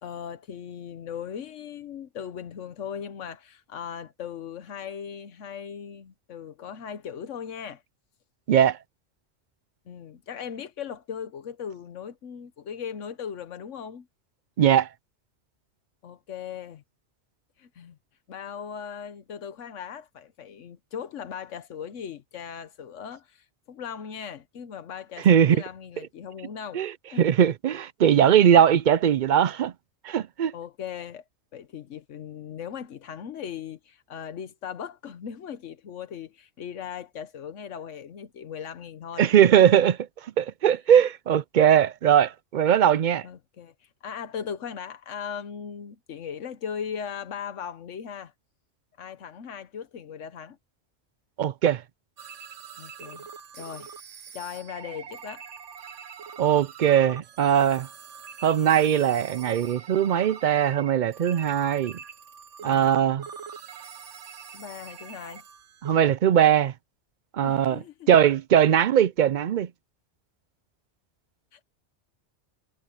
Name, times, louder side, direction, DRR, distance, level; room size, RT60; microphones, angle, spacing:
voice 1, 0.0-7.8 9.9-14.1 16.0-16.8 17.6-18.0 18.3-26.8 27.1-27.3 30.5-31.2 31.5-39.3 43.2-48.3 49.0-50.6 52.8-53.3 53.5-53.9 54.3-55.4 62.6-63.0 64.5-65.4 67.4-68.1 71.5-71.6, left 8 dB, 90° left, 1.3 m, -38 dB
voice 2, 14.6-14.9 25.2-25.6 26.7-26.9 27.2-29.7 30.0-30.5 39.2-40.0 40.4-43.2 51.4-51.8 56.4-57.9 58.4-62.0 62.6-63.3 65.8-66.7 67.3-69.7, right 9 dB, 60° right, 0.5 m, -20 dB
sound 1, 52.2-65.9, right 6 dB, 85° right, 1.3 m, -44 dB
omnidirectional pair, 1.2 m